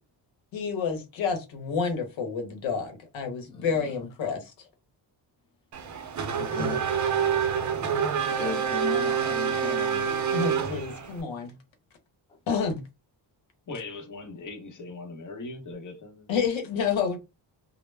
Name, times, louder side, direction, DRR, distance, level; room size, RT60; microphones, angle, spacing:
voice 1, 0.5-4.5 6.6-6.8 10.3-11.5 12.5-12.8 16.3-17.2, left 5 dB, 85° left, 0.9 m, -29 dB
voice 2, 3.4-4.1 6.3-7.3 8.4-10.1 12.3-12.4, left 5 dB, 10° left, 0.5 m, -37 dB
Race car auto racing / Accelerating revving vroom, 5.7-11.2, right 7 dB, 40° right, 0.5 m, -27 dB
voice 3, 13.7-16.3, left 3 dB, 45° left, 0.9 m, -40 dB
2.1 x 2.0 x 3.2 m
cardioid pair, 105°, 45 cm